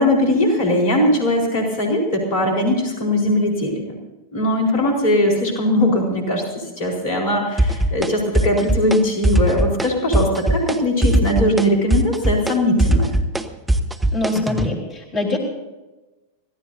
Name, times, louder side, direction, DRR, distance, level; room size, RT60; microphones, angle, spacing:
voice 1, 0.0-4.0 4.3-13.1, left 1 dB, 50° left, 0 dB, 4.1 m, -20 dB
sound 1, 7.6-8.1 8.3-9.0 9.2-9.9 10.1-10.8 11.0-14.7, right 1 dB, 10° right, 1.1 m, -19 dB
voice 2, 14.1-15.4, left 2 dB, 30° left, 0 dB, 4.2 m, -23 dB
24.5 x 16.5 x 2.7 m, 1.1 s
figure-of-eight pair, 90°, 0 cm